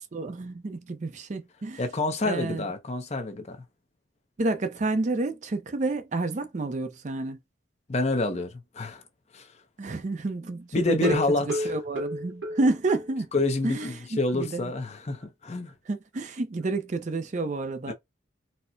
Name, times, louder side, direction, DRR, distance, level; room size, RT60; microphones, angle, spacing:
voice 1, 0.1-1.8 2.2-2.6 4.4-7.4 9.8-11.2 11.6-13.3 13.6-14.7 15.9-17.9, right 2 dB, 40° right, 0.4 m, -29 dB
voice 2, 1.8-3.6 7.9-9.0 9.3-9.5 10.7-11.7 13.3-15.7 17.9-18.0, left 2 dB, 35° left, 0.6 m, -28 dB
sound 1, 11.0-13.5 13.8-13.9 14.3-14.4 14.7-14.8, equal, 80° right, 1.2 m, -32 dB
4.2 x 2.0 x 2.6 m
head